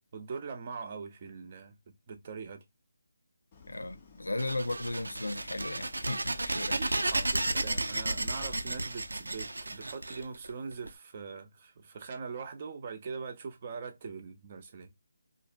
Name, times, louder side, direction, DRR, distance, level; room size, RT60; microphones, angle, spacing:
voice 1, 0.1-1.8 2.1-2.6 6.8-14.9, right 5 dB, 30° right, 0.5 m, -42 dB
Idling, 3.5-9.6, left 6 dB, 30° left, 0.5 m, -54 dB
voice 2, 3.7-7.0, left 2 dB, 90° left, 0.5 m, -36 dB
sound 1, 4.4-10.9, right 2 dB, 85° right, 0.4 m, -33 dB
2.5 x 2.1 x 2.4 m
figure-of-eight pair, 165°, 0 cm